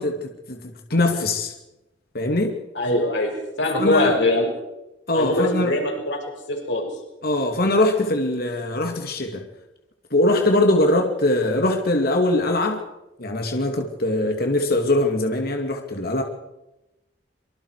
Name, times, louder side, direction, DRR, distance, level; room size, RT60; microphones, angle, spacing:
voice 1, 0.0-1.5 2.1-2.6 3.8-4.1 5.1-5.7 7.2-9.5 10.1-12.8 13.2-16.2, left 1 dB, 55° left, 4 dB, 2.6 m, -22 dB
voice 2, 2.7-3.3 3.6-4.5 5.1-6.2 6.5-6.9, left 1 dB, 80° left, 1 dB, 6.4 m, -22 dB
25.5 x 24.0 x 4.9 m, 0.95 s
head